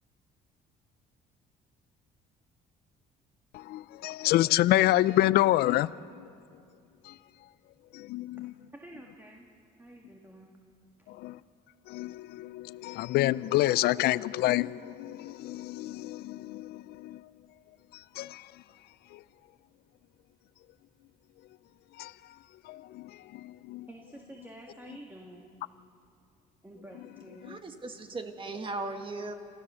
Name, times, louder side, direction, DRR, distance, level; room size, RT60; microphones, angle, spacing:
voice 1, 3.5-6.3 7.1-7.2 7.9-8.5 11.1-11.4 11.9-17.2 18.2-18.5 19.1-19.2 22.0-22.1 22.7-23.9, left 16 dB, 70° left, 0.4 m, -28 dB
voice 2, 8.7-9.5 9.8-10.5 23.1-23.2 23.9-25.5 26.6-27.7, right 1 dB, 10° right, 1.8 m, -49 dB
voice 3, 27.5-29.3, right 3 dB, 30° right, 1.7 m, -37 dB
29.0 x 14.0 x 6.9 m
cardioid pair, 110°, 17 cm